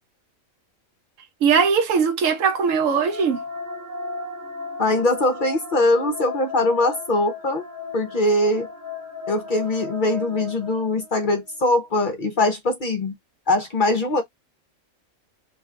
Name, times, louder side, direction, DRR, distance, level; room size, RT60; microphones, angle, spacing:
voice 1, 1.4-3.4, right 6 dB, 75° right, 0.9 m, -20 dB
sound 1, 2.2-11.4, left 3 dB, 35° right, 1.0 m, -35 dB
voice 2, 4.8-7.6 7.9-8.7 9.3-13.1 13.5-14.2, left 2 dB, 55° left, 0.6 m, -22 dB
2.5 x 2.2 x 3.6 m
omnidirectional pair, 1.4 m